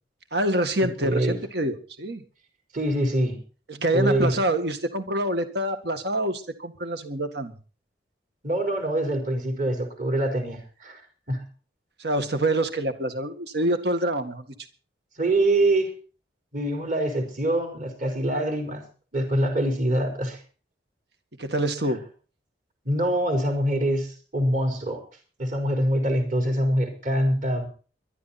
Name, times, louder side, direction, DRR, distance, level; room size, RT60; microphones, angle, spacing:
voice 1, 0.3-2.2 3.7-7.5 12.0-14.5 21.4-22.0, right 1 dB, 60° right, 8 dB, 1.9 m, -26 dB
voice 2, 1.0-1.4 2.7-3.4 3.9-4.4 8.4-11.0 11.3-11.4 15.2-15.9 16.5-18.8 19.1-20.4 22.8-25.0 25.4-27.7, right 1 dB, 45° right, 3 dB, 4.5 m, -24 dB
22.5 x 11.5 x 4.3 m, 0.39 s
head